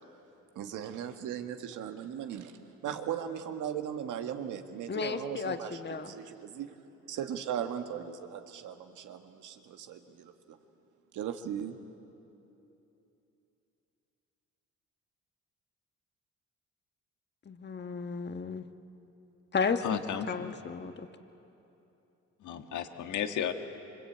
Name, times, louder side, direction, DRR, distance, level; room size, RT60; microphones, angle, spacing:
voice 1, 0.5-6.8 7.1-10.3 11.1-11.8, right 9 dB, 85° right, 6 dB, 1.8 m, -38 dB
voice 2, 4.9-6.1 17.4-18.7 19.5-19.8 20.3-21.1, left 5 dB, 35° left, 7 dB, 1.5 m, -33 dB
voice 3, 19.8-20.5 22.4-23.5, left 9 dB, 75° left, 6 dB, 1.7 m, -33 dB
26.5 x 24.5 x 8.7 m, 2.9 s
cardioid pair, 90°, 30 cm